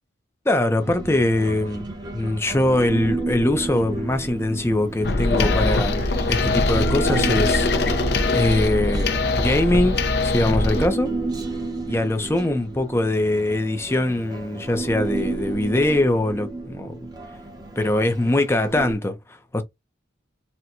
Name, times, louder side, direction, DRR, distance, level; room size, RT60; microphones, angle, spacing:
voice 1, 0.5-7.7 8.3-11.1 11.9-17.0 17.8-19.6, left 1 dB, 15° left, 0.5 m, -22 dB
Human voice, 0.8-19.0, right 3 dB, 20° right, 0.7 m, -32 dB
sound 1, 5.0-10.9, left 2 dB, 55° left, 0.6 m, -22 dB
4.3 x 2.2 x 2.5 m
head